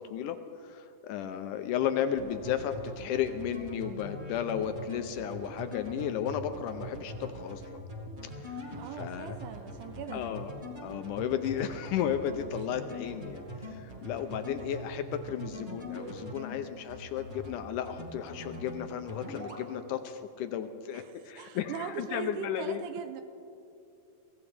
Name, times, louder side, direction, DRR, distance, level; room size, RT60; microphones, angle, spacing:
voice 1, 0.0-7.6 8.2-8.6 8.9-9.4 10.1-10.5 10.8-22.8, left 9 dB, 80° left, 8 dB, 2.0 m, -34 dB
sound 1, 2.2-16.5 16.9-17.5 17.8-18.8 19.1-19.6, equal, 30° right, 0.9 m, -42 dB
voice 2, 8.8-10.3 20.9-23.2, right 7 dB, 80° right, 8 dB, 2.0 m, -40 dB
23.0 x 17.0 x 3.4 m, 2.6 s
omnidirectional pair, 4.0 m